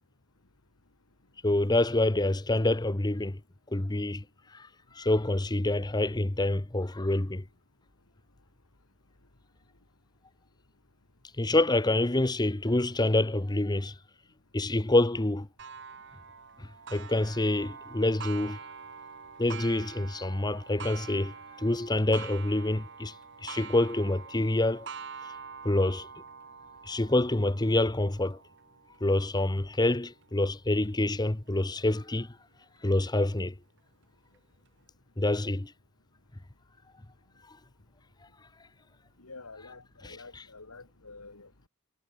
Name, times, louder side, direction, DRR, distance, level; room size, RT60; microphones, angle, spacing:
voice 1, 1.4-3.4 3.7-4.2 4.5-4.7 4.9-7.4 11.4-13.9 14.5-15.5 16.6-18.6 19.4-23.1 23.4-24.9 25.6-26.1 26.9-28.4 29.0-32.3 32.8-33.5 35.2-35.7, left 2 dB, 20° left, 0.8 m, -27 dB
Clock, 15.6-30.9 31.5-31.6 32.1-32.2 33.2-33.3, right 6 dB, 55° right, 2.3 m, -46 dB
voice 2, 39.2-41.7, left 3 dB, 85° left, 2.9 m, -48 dB
head